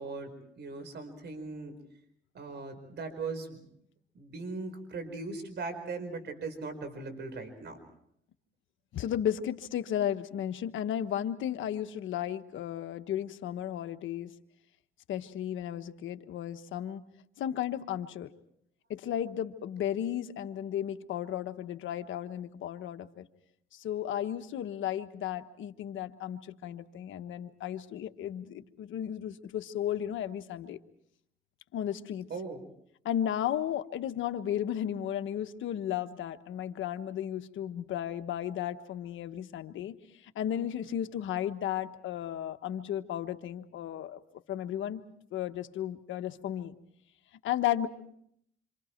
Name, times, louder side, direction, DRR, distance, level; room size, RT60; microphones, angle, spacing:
voice 1, 0.0-1.7 2.3-3.7 4.1-7.8 32.3-32.6, right 3 dB, 60° right, 8 dB, 4.7 m, -39 dB
voice 2, 8.9-14.3 15.1-17.0 17.4-18.3 18.9-23.3 23.7-30.8 31.7-32.3 33.0-40.0 40.2-44.2 44.5-45.0 45.3-46.7 47.4-47.9, left 10 dB, 80° left, 8 dB, 1.3 m, -34 dB
27.5 x 26.5 x 4.5 m, 0.71 s
cardioid pair, 90°, 20 cm